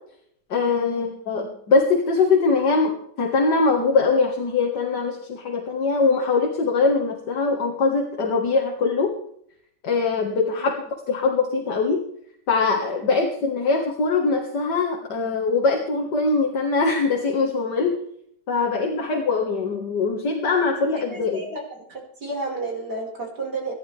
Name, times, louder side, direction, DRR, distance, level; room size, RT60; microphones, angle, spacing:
voice 1, 0.5-9.1 9.8-10.8 11.1-12.0 12.5-18.0 18.5-21.4, left 4 dB, 75° left, 1 dB, 2.4 m, -22 dB
voice 2, 21.0-21.6 21.9-23.7, right 3 dB, 70° right, -1 dB, 5.8 m, -32 dB
24.0 x 11.0 x 3.5 m, 0.69 s
omnidirectional pair, 1.8 m